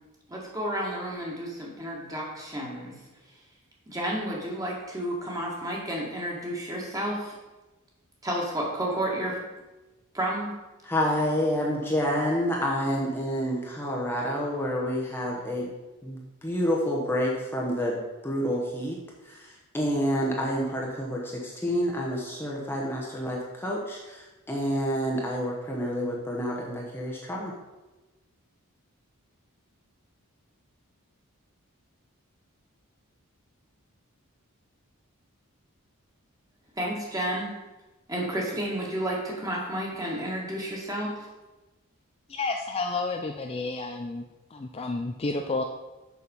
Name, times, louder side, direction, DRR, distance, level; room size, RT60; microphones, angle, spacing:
voice 1, 0.3-3.0 3.9-7.3 8.2-9.4 10.1-10.5 36.8-37.5 38.1-41.1, right 1 dB, 15° right, -3 dB, 1.8 m, -31 dB
voice 2, 10.8-15.7 16.0-18.0 18.2-19.0 19.7-24.2 24.5-27.5, equal, 10° left, -3 dB, 0.9 m, -28 dB
voice 3, 42.3-44.2 44.5-45.6, left 3 dB, 25° left, 4 dB, 0.4 m, -30 dB
6.8 x 6.2 x 5.4 m, 1.1 s
head